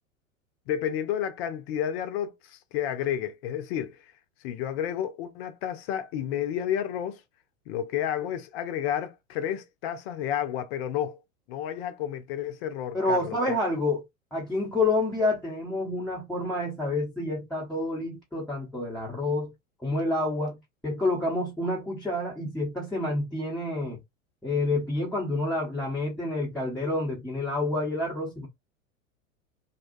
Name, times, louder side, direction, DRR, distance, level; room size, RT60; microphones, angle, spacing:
voice 1, 0.7-4.0 4.4-7.2 7.7-11.2 11.5-13.6, left 10 dB, 50° left, 0.7 m, -31 dB
voice 2, 12.9-14.0 14.3-19.5 19.8-20.6 20.8-24.0 24.4-28.5, left 2 dB, ahead, 0.9 m, -28 dB
2.7 x 2.2 x 2.5 m
figure-of-eight pair, 90°, 41 cm